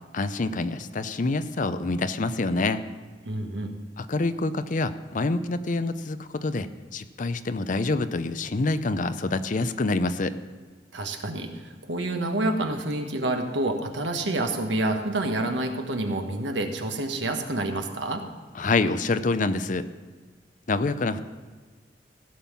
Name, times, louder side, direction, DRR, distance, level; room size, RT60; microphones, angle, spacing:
voice 1, 0.1-2.8 4.0-10.4 18.6-19.9 20.7-21.2, left 3 dB, 45° left, 11 dB, 0.5 m, -26 dB
voice 2, 3.2-3.7 10.9-18.2, right 2 dB, 85° right, 5 dB, 1.3 m, -28 dB
16.0 x 5.6 x 7.2 m, 1.4 s
head